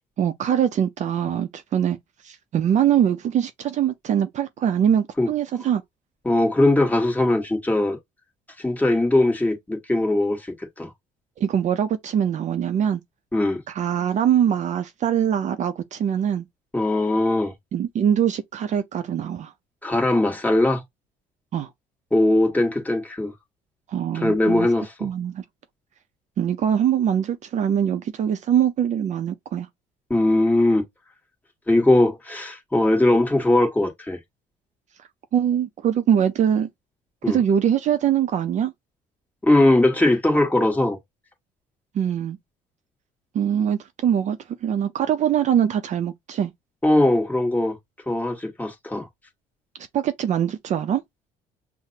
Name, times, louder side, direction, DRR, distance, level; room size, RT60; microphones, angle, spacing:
voice 1, 0.2-2.0 2.2-5.8 11.4-13.0 13.7-16.5 17.7-19.5 21.5-21.7 23.9-24.7 25.0-25.4 26.4-29.7 35.3-36.7 37.3-38.7 41.9-42.4 43.3-46.5 49.9-51.0, right 9 dB, 45° right, 0.5 m, -23 dB
voice 2, 6.2-8.0 8.6-10.9 13.3-13.6 16.7-17.5 19.8-20.8 22.1-23.3 24.1-25.1 30.1-30.8 31.7-34.2 37.2-37.4 39.4-41.0 46.8-47.8 48.1-49.1, left 1 dB, 10° left, 1.3 m, -20 dB
5.7 x 2.1 x 2.7 m
cardioid pair, 95°, 16 cm